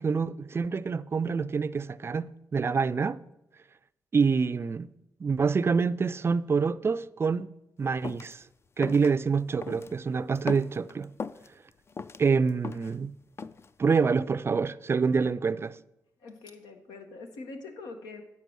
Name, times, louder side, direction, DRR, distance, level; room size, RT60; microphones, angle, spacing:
voice 1, 0.0-3.2 4.1-4.9 5.2-7.5 7.8-8.4 8.8-11.1 12.2-13.1 13.8-15.8, right 5 dB, 35° right, 0.4 m, -26 dB
sound 1, 8.0-8.3 8.8-9.1 9.6-10.0 10.4-11.5 11.9-13.0 13.4-13.7, left 4 dB, 40° left, 0.4 m, -38 dB
voice 2, 16.2-18.2, left 3 dB, 85° left, 1.1 m, -43 dB
8.3 x 6.7 x 6.2 m
supercardioid pair, 60°, 7 cm